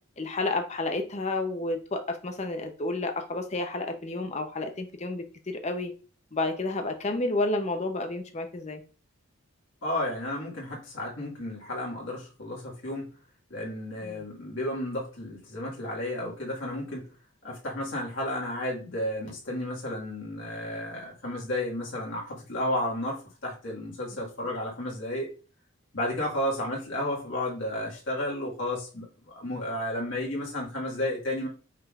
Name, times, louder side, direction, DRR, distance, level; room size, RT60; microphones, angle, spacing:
voice 1, 0.2-5.9 6.3-8.8 14.0-14.2, left 2 dB, 30° left, 0.6 m, -30 dB
voice 2, 9.8-13.1 13.5-17.1 17.4-25.3 25.9-31.5, left 1 dB, 60° left, 1.7 m, -32 dB
5.5 x 3.7 x 2.4 m
head